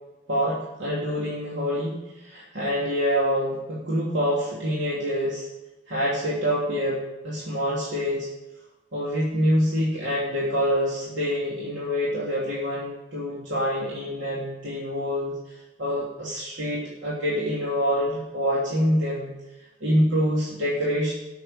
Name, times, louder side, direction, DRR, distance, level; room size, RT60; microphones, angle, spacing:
voice 1, 0.3-5.5 5.9-8.3 8.9-15.4 15.8-19.3 19.8-21.1, equal, 80° right, -6 dB, 2.9 m, -26 dB
12.5 x 6.6 x 6.8 m, 1.1 s
head